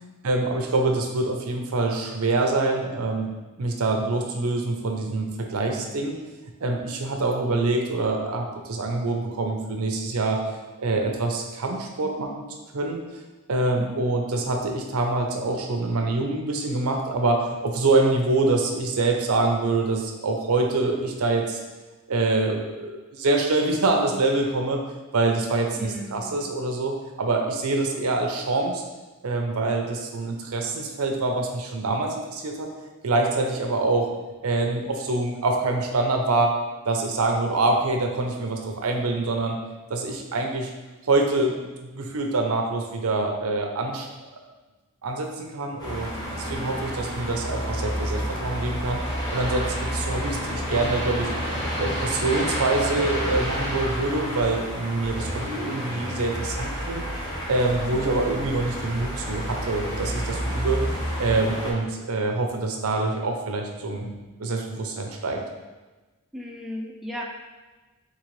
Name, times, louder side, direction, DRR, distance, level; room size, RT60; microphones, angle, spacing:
voice 1, 0.2-3.3 3.6-6.2 6.6-10.4 10.8-12.4 12.7-13.0 13.5-21.6 22.1-24.8 25.1-28.8 29.2-32.7 33.0-34.1 34.4-36.6 36.9-39.6 39.9-40.7 41.0-41.6 41.8-44.3 45.0-46.1 46.4-51.3 51.8-57.0 57.5-60.8 61.2-64.1 64.4-65.4, right 2 dB, 85° right, 2 dB, 0.6 m, -25 dB
voice 2, 13.7-14.1 25.8-26.4 46.5-46.8 57.9-58.2 66.3-67.2, left 1 dB, ahead, -2 dB, 0.4 m, -37 dB
sound 1, 45.8-61.7, equal, 20° left, 1.0 m, -30 dB
3.9 x 3.8 x 3.1 m, 1.2 s
head